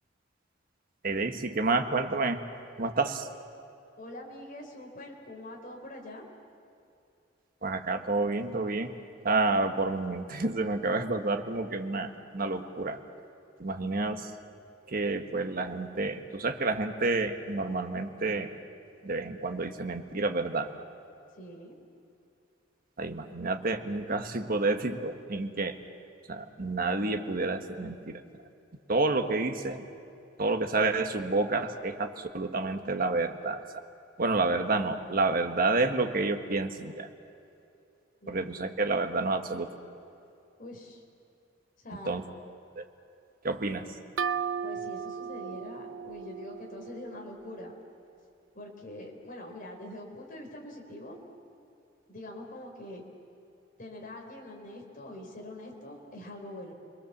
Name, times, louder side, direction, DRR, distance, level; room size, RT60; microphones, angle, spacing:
voice 1, 1.0-2.4 2.8-3.3 7.6-8.9 9.2-13.0 13.6-14.3 14.9-18.5 19.0-20.7 23.0-25.8 26.3-28.2 28.9-29.8 30.4-33.6 34.2-37.1 38.3-39.8 42.0-42.2 42.8-42.9 43.4-43.9, right 3 dB, 50° right, 6 dB, 1.5 m, -29 dB
voice 2, 4.0-6.3 21.3-21.8 38.2-38.6 40.6-41.0 41.8-42.2 44.6-47.7 48.5-51.2 52.1-53.0 53.8-56.7, left 1 dB, 45° left, 0 dB, 3.8 m, -44 dB
sound 1, 44.2-47.7, right 7 dB, 80° right, 0.6 m, -36 dB
30.0 x 21.5 x 7.4 m, 2.6 s
head